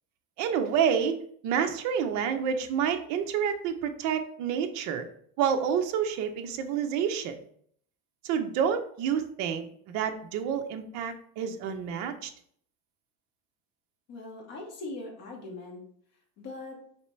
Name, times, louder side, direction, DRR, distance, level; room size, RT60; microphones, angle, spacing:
voice 1, 0.4-1.2 1.4-5.1 5.4-7.4 8.2-12.3, right 7 dB, 45° right, 7 dB, 0.5 m, -28 dB
voice 2, 14.1-15.8 16.4-16.8, left 2 dB, 40° left, 0 dB, 1.1 m, -40 dB
4.3 x 3.3 x 3.1 m, 0.62 s
cardioid pair, 160°, 42 cm